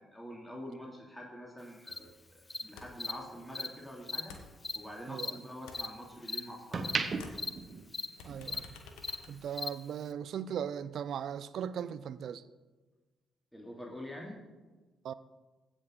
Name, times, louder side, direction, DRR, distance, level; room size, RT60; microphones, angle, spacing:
voice 1, 0.0-4.3 4.7-7.1 13.5-14.4, equal, 5° left, 2.6 m, -46 dB
Cricket, 1.9-2.0 2.5-2.6 3.0-3.1 3.5-3.7 4.0-4.2 4.6-4.8 5.2-5.3 5.7-5.9 6.2-6.4 6.8-7.0 7.3-7.5 7.9-8.1 8.4-8.6 9.0-9.2 9.5-9.7, left 3 dB, 35° left, 0.8 m, -37 dB
sound 1, 1.9-4.2 4.6-6.1 6.5-8.6 8.9-9.2, right 4 dB, 45° right, 1.0 m, -38 dB
sound 2, 2.8-3.2 3.4-5.2 5.5-6.8 7.1-10.1, left 4 dB, 75° left, 1.1 m, -52 dB
voice 2, 8.2-8.7 9.3-12.4 15.0-15.1, right 8 dB, 65° right, 0.4 m, -38 dB
16.0 x 6.3 x 3.8 m
hypercardioid pair, 45°, 0 cm